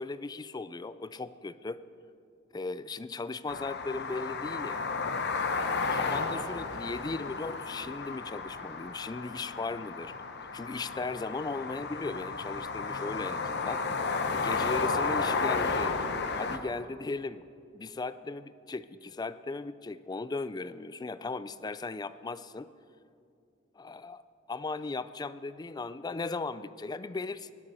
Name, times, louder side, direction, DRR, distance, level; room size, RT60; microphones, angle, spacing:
voice 1, 0.0-1.8 2.5-4.8 5.9-10.1 10.5-13.8 14.3-16.0 16.4-17.4 17.7-22.7 23.8-24.2 24.5-27.5, left 3 dB, 20° left, 15 dB, 0.3 m, -37 dB
sound 1, 3.5-16.6, left 4 dB, 60° left, 0.9 m, -33 dB
19.5 x 6.7 x 7.0 m, 2.4 s
head